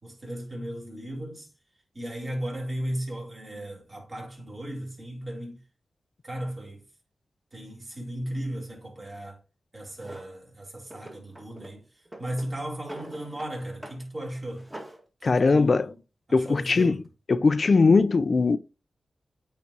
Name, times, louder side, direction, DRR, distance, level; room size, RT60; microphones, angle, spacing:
voice 1, 0.0-1.5 1.9-5.6 6.2-6.8 7.5-9.4 9.7-11.8 12.2-14.7 15.2-15.9 16.3-17.0, right 1 dB, 40° right, 3.1 m, -36 dB
Drawer open or close, 10.0-10.3 10.9-11.7 12.0-13.5 13.8-14.0 14.3-15.0, right 1 dB, 15° right, 1.8 m, -43 dB
voice 2, 15.2-15.9 16.3-17.0 17.3-18.6, left 4 dB, 55° left, 0.4 m, -20 dB
8.6 x 4.1 x 2.9 m
cardioid pair, 45°, 0 cm